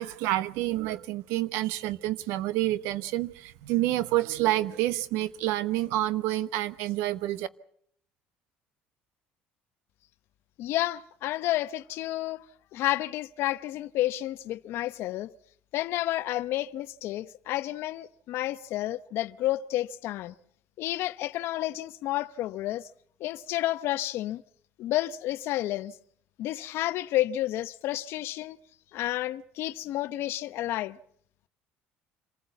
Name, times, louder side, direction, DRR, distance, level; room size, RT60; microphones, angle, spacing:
voice 1, 0.0-7.5, right 15 dB, 85° right, 1.0 m, -28 dB
voice 2, 10.6-12.5 12.7-15.3 15.7-20.3 20.8-22.9 23.2-24.4 24.8-26.0 26.4-28.6 28.9-31.0, left 15 dB, 65° left, 0.8 m, -30 dB
26.5 x 15.5 x 8.2 m
cardioid pair, 110°, 4 cm